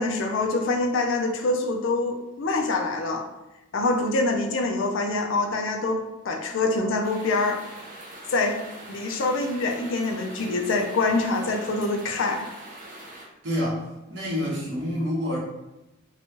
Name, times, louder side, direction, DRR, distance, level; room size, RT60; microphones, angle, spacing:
voice 1, 0.0-3.3 3.7-7.6 8.3-8.6 8.9-12.5, left 3 dB, 70° left, 3 dB, 0.4 m, -25 dB
sound 1, 7.0-13.3, right 1 dB, 40° right, 0.6 m, -43 dB
voice 2, 13.4-15.4, equal, 60° right, -5 dB, 1.0 m, -28 dB
2.9 x 2.2 x 2.8 m, 0.98 s
head